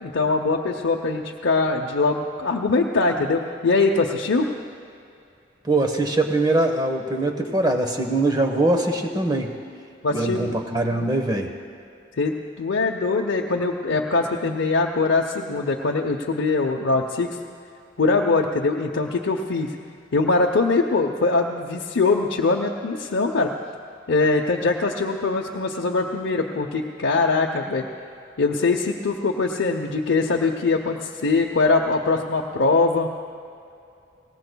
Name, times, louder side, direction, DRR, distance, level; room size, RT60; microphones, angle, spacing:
voice 1, 0.0-4.5 10.0-10.6 11.0-11.1 12.2-17.4 18.0-19.7 20.1-23.5 24.1-27.9 28.4-33.1, left 3 dB, 85° left, -1 dB, 0.7 m, -22 dB
voice 2, 5.6-9.5 10.1-11.5, right 2 dB, 20° right, 3 dB, 1.0 m, -22 dB
22.0 x 18.0 x 2.3 m, 2.5 s
head